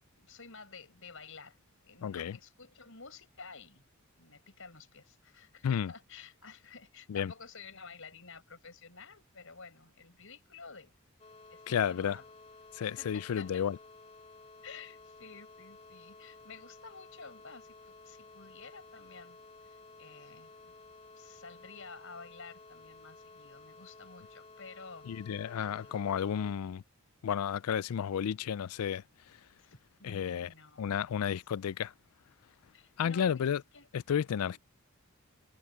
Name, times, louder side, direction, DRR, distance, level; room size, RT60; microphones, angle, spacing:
voice 1, 0.2-1.6 1.8-3.8 4.2-10.9 11.5-12.3 12.8-13.7 14.6-19.4 19.6-20.7 21.2-26.0 29.6-31.1 32.7-33.9 34.1-34.6, left 4 dB, 60° left, 7.0 m, -51 dB
voice 2, 2.0-2.4 5.6-5.9 7.1-7.3 11.7-12.2 12.7-13.8 25.1-26.8 27.2-29.0 30.0-30.5 30.8-31.9 33.0-33.6 33.9-34.6, left 8 dB, 85° left, 0.4 m, -32 dB
sound 1, 11.2-26.5, left 3 dB, 30° left, 3.4 m, -54 dB
head